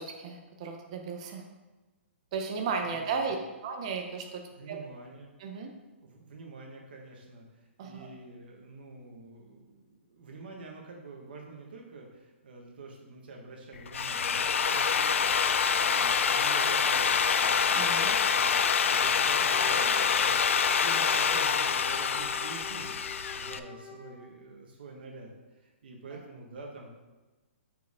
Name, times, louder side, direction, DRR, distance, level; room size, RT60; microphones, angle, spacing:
voice 1, 0.0-1.4 2.3-3.4 3.6-4.4 4.7-4.8 5.4-5.7 7.8-8.1 17.7-18.2, right 5 dB, 30° right, 3 dB, 0.6 m, -34 dB
voice 2, 2.8-3.4 4.5-5.3 6.0-26.9, right 3 dB, 50° right, 0 dB, 1.3 m, -47 dB
Drill, 13.8-23.6, left 6 dB, 80° left, 0.4 m, -26 dB
Wind instrument woodwind instrument, 19.3-24.5, left 4 dB, 15° left, 0.6 m, -48 dB
6.3 x 4.6 x 3.6 m, 1.2 s
hypercardioid pair, 175°, 7 cm